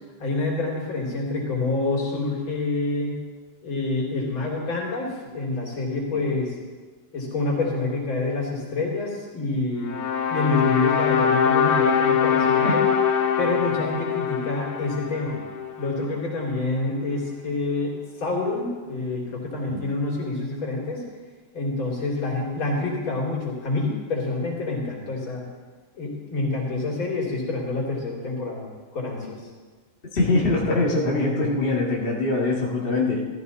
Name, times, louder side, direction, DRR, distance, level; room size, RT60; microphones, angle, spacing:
voice 1, 0.2-3.2 3.6-6.6 7.1-9.9 10.3-12.8 13.4-15.4 15.8-21.0 21.5-25.4 25.9-28.7 28.9-29.4, left 3 dB, 70° left, -3 dB, 3.9 m, -27 dB
sound 1, 9.8-16.1, left 7 dB, 55° left, 1.2 m, -23 dB
voice 2, 30.1-33.2, left 2 dB, 25° left, -3 dB, 2.0 m, -23 dB
14.5 x 14.0 x 4.2 m, 1.4 s
omnidirectional pair, 2.2 m